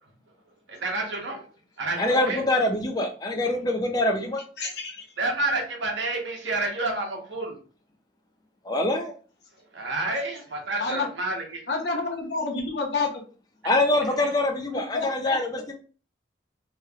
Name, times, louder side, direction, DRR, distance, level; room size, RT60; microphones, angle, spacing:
voice 1, 0.7-1.4 1.8-2.4 5.2-7.6 9.7-11.6 14.1-14.3, right 2 dB, 80° right, 0 dB, 1.0 m, -29 dB
voice 2, 2.0-4.4 8.7-9.1 13.6-15.7, left 1 dB, 20° left, 4 dB, 0.4 m, -24 dB
voice 3, 4.6-5.1 10.8-11.1 11.7-13.1 14.9-15.4, left 4 dB, 65° left, 1 dB, 0.8 m, -28 dB
3.0 x 3.0 x 2.3 m, 0.38 s
head